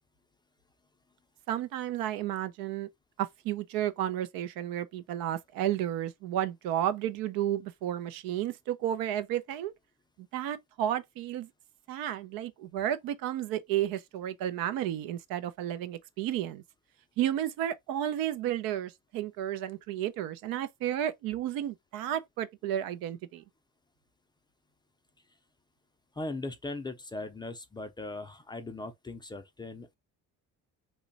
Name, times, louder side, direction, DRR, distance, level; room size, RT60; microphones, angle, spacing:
voice 1, 1.5-2.9 3.2-9.7 10.3-11.5 11.9-16.6 17.2-23.4, right 11 dB, 85° right, 0.6 m, -32 dB
voice 2, 26.1-30.0, left 2 dB, 15° left, 0.3 m, -39 dB
3.1 x 2.2 x 3.9 m
cardioid pair, 140°, 34 cm